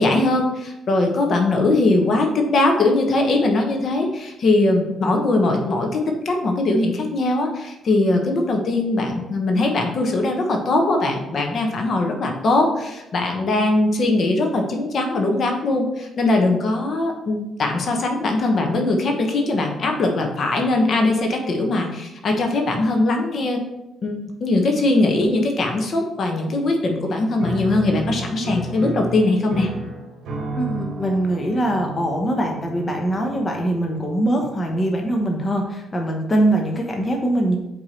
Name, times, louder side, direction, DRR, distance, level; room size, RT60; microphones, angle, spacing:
voice 1, 0.0-23.6 24.0-29.7, left 2 dB, 55° left, 3 dB, 1.2 m, -20 dB
Piano, 27.4-34.2, right 2 dB, 65° right, 1.3 m, -32 dB
voice 2, 30.6-37.6, right 1 dB, 25° left, 1 dB, 1.0 m, -22 dB
4.9 x 4.6 x 4.3 m, 0.91 s
cardioid pair, 90°, 0 cm